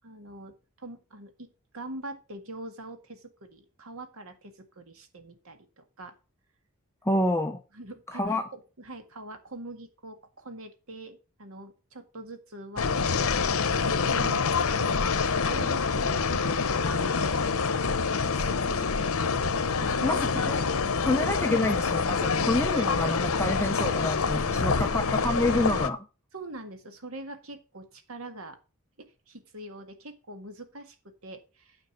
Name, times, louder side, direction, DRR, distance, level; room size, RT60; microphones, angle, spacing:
voice 1, 0.0-1.5 1.7-6.1 7.7-16.5 16.8-19.1 19.8-20.5 22.7-22.9 24.3-25.0 26.3-28.6 29.0-31.8, right 2 dB, 75° right, 7 dB, 1.9 m, -43 dB
voice 2, 7.0-7.6 8.1-8.4 20.0-20.2 20.5-20.6 21.1-26.0, left 1 dB, 10° left, 5 dB, 0.6 m, -27 dB
sound 1, 12.8-25.9, left 5 dB, 80° left, 0.9 m, -26 dB
9.4 x 5.2 x 6.4 m, 0.31 s
head